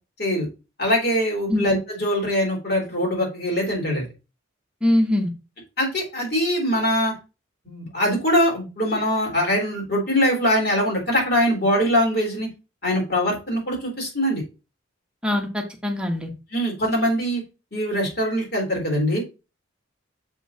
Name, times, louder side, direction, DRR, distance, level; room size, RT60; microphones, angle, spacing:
voice 1, 0.8-4.0 5.8-7.1 7.6-12.5 12.8-14.4 16.5-17.4 17.7-19.2, equal, 50° left, -1 dB, 3.3 m, -22 dB
voice 2, 4.8-5.3 15.2-16.3, left 1 dB, 5° right, 2 dB, 1.1 m, -22 dB
7.4 x 5.3 x 2.8 m, 0.29 s
head